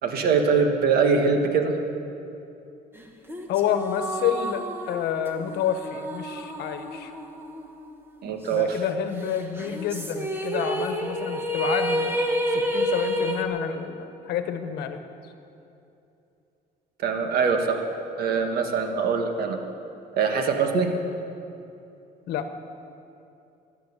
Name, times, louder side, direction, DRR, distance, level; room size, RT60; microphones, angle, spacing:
voice 1, 0.0-1.7 8.2-8.8 17.0-17.8 18.2-19.6 20.2-20.9, right 5 dB, 65° right, 4 dB, 1.7 m, -23 dB
sound 1, 3.3-7.9 8.2-8.3 9.6-13.4, equal, 15° right, 1.4 m, -29 dB
voice 2, 3.5-7.1 8.5-12.2 12.5-15.0 22.3-22.5, left 9 dB, 75° left, 8 dB, 1.2 m, -29 dB
14.0 x 11.0 x 8.3 m, 2.8 s
cardioid pair, 110°, 17 cm